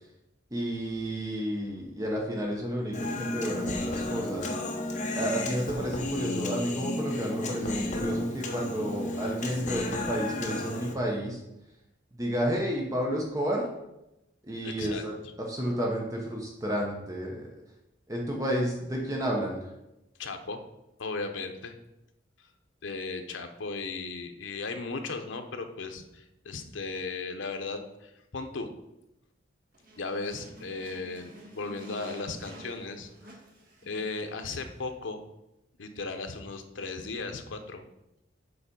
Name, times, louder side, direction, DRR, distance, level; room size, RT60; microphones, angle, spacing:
voice 1, 0.5-4.5 5.1-11.4 12.1-13.7 14.4-17.5 18.1-19.7, equal, 20° right, -1 dB, 0.9 m, -31 dB
Human voice, 2.9-10.9, left 2 dB, 40° left, 1.0 m, -33 dB
voice 2, 14.6-15.0 20.2-20.6 21.0-21.8 22.8-28.7 30.0-33.3 33.8-35.2 35.8-37.8, left 3 dB, 80° left, 6 dB, 0.8 m, -36 dB
sound 1, 29.7-34.9, right 2 dB, 50° right, 1.5 m, -49 dB
6.9 x 4.1 x 5.2 m, 0.90 s
head